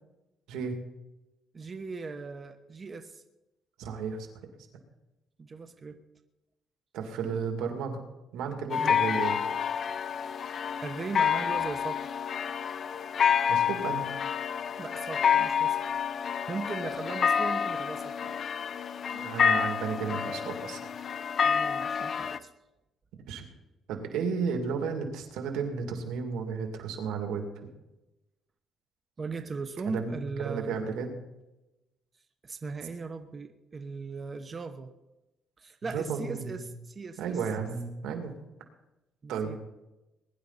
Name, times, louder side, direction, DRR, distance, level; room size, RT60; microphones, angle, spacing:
voice 1, 0.5-0.8 3.8-4.3 6.9-8.0 8.3-9.4 13.5-14.1 19.1-21.0 23.3-23.4 23.9-27.4 29.9-30.2 30.4-31.1 35.8-36.5 37.2-38.3 39.3-39.6, right 6 dB, 90° right, 4 dB, 2.5 m, -33 dB
voice 2, 1.5-3.2 5.4-6.0 8.8-9.0 10.8-12.1 14.8-15.8 16.1-18.4 21.4-22.5 29.2-30.8 32.4-34.9 35.6-37.4 39.2-39.6, right 4 dB, 30° right, 7 dB, 0.9 m, -38 dB
sound 1, 8.7-22.4, left 7 dB, 45° left, 0.6 m, -28 dB
21.0 x 11.0 x 4.1 m, 0.98 s
cardioid pair, 120°, 0 cm